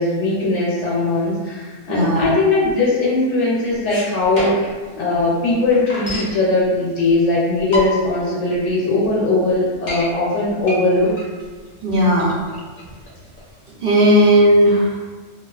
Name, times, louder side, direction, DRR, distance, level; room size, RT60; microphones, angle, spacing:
voice 1, 0.0-4.5 4.9-11.1, left 2 dB, 85° left, -6 dB, 0.9 m, -19 dB
voice 2, 1.9-2.3 11.8-12.3 13.8-14.9, equal, 60° right, -6 dB, 0.7 m, -15 dB
sound 1, 3.9-4.8 5.2-5.3 5.5-6.4 7.1-7.2 7.6-8.2 8.7-8.8 9.0-9.1 9.5-10.1 10.6-13.5, left 2 dB, 50° left, 0.6 m, -29 dB
2.3 x 2.3 x 2.3 m, 1.4 s
omnidirectional pair, 1.2 m